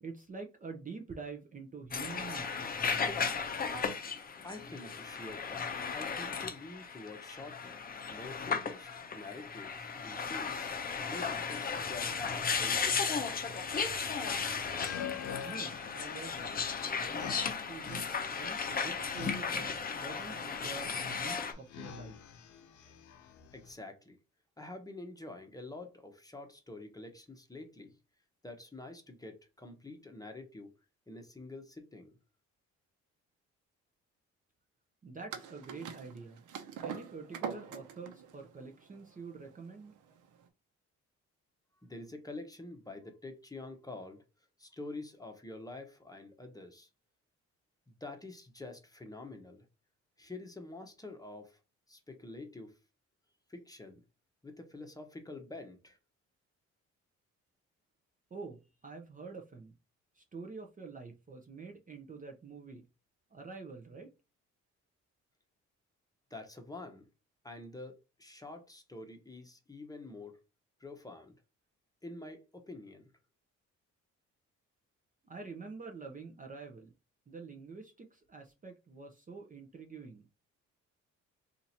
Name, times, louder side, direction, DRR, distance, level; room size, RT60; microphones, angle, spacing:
voice 1, 0.0-2.7 15.4-16.6 17.1-22.2 35.0-36.5 36.8-39.9 58.3-59.7 60.2-62.9 63.3-64.1 75.2-76.9 77.3-80.3, right 4 dB, 25° right, 0.6 m, -47 dB
sound 1, 1.9-21.5, left 5 dB, 30° left, 0.7 m, -35 dB
voice 2, 4.4-10.7 11.1-13.4 23.5-24.2 24.6-28.0 28.4-30.7 31.1-32.2 41.8-44.2 44.6-46.9 47.9-49.7 50.2-51.6 51.9-52.8 53.5-54.0 54.4-56.0 66.3-67.1 67.4-70.4 70.8-71.4 72.0-73.1, left 2 dB, 10° left, 0.9 m, -47 dB
sound 2, 13.7-23.7, left 8 dB, 75° left, 0.7 m, -46 dB
sound 3, 35.3-40.4, right 7 dB, 80° right, 0.8 m, -44 dB
2.8 x 2.5 x 4.2 m
cardioid pair, 90°, 30 cm